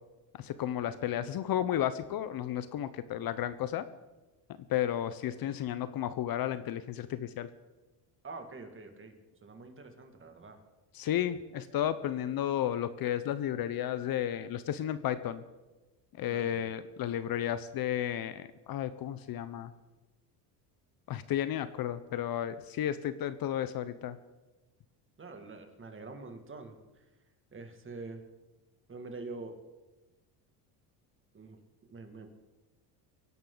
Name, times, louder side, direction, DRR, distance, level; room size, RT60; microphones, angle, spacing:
voice 1, 0.4-3.8 4.7-7.5 10.9-15.4 16.2-19.7 21.1-24.2, left 11 dB, 50° left, 13 dB, 0.9 m, -33 dB
voice 2, 8.2-10.6 16.3-16.7 25.2-27.0 27.5-28.2 28.9-29.6 31.3-31.6 31.9-32.3, right 3 dB, 25° right, 5 dB, 2.2 m, -45 dB
24.0 x 11.0 x 4.0 m, 1.1 s
supercardioid pair, 100°, 45 cm